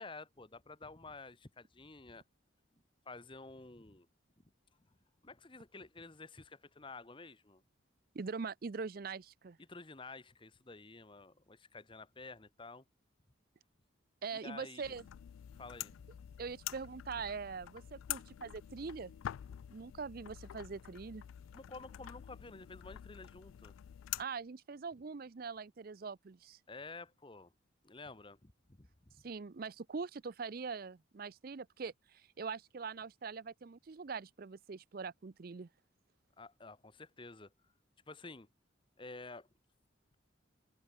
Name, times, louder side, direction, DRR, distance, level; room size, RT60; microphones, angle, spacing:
voice 1, 0.0-2.2 3.0-4.1 4.4-4.5 5.2-7.6 9.6-12.8 14.4-14.9 15.5-15.9 21.5-23.7 26.7-27.5 27.8-28.9 36.4-37.5 38.1-38.5 39.0-39.5, left 3 dB, 25° left, 1.1 m, -51 dB
voice 2, 8.1-9.6 14.2-15.0 16.4-19.1 19.7-21.2 24.2-26.6 29.2-35.7, right 5 dB, 45° right, 0.5 m, -43 dB
sound 1, 14.8-24.2, left 12 dB, 80° left, 0.3 m, -47 dB
open air
head